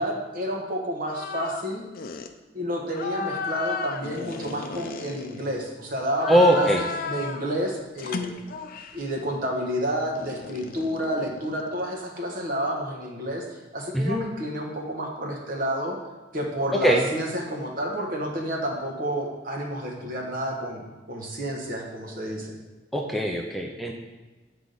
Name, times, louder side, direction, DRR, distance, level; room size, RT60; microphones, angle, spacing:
voice 1, 0.0-1.8 2.5-8.3 8.9-13.4 13.7-16.0 16.3-22.6, equal, 50° right, 0 dB, 1.2 m, -30 dB
sound 1, 1.0-1.7 1.9-2.3 2.9-5.7 6.1-7.5 8.0-9.1 10.1-11.9, left 5 dB, 50° left, 0.5 m, -34 dB
voice 2, 6.3-6.8 13.9-14.2 16.8-17.0 22.9-23.9, equal, ahead, 0 dB, 0.5 m, -21 dB
8.2 x 4.8 x 3.9 m, 1.2 s
head